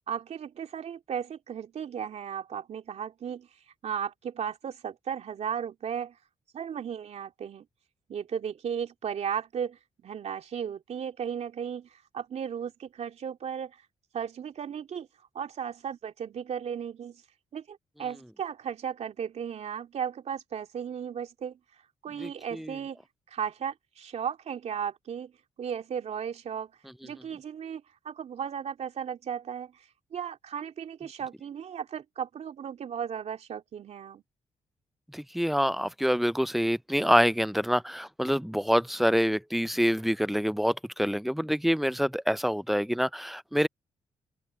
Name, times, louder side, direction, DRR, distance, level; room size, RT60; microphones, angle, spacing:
voice 1, 0.1-3.5 3.8-6.2 6.5-7.6 8.1-13.8 14.1-15.1 15.3-17.2 17.5-21.6 22.0-23.0 23.3-25.3 25.6-26.7 27.0-29.8 30.1-34.2, right 8 dB, 65° right, 3.1 m, -35 dB
voice 2, 22.2-22.8 35.1-43.7, equal, ahead, 0.4 m, -26 dB
open air
supercardioid pair, 55°, 12 cm